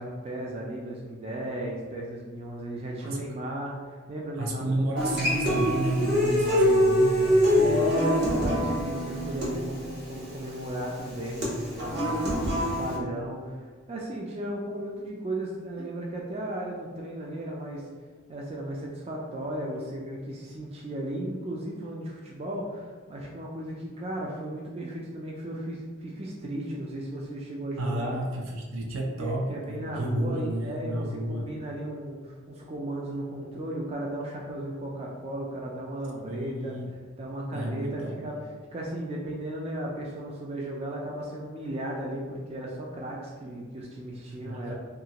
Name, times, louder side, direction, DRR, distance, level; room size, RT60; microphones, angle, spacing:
voice 1, 0.0-5.2 7.5-17.9 18.3-28.2 29.2-36.7 37.2-38.4 38.7-44.7, right 1 dB, 30° right, -2 dB, 0.3 m, -35 dB
voice 2, 4.4-7.8 15.8-15.9 27.8-31.5 36.3-36.9 37.5-38.2 43.4-43.5 44.3-44.7, right 1 dB, 85° right, 0 dB, 0.5 m, -31 dB
Human voice / Acoustic guitar, 5.0-13.0, equal, 55° right, 0.8 m, -25 dB
2.8 x 2.4 x 2.8 m, 1.5 s
head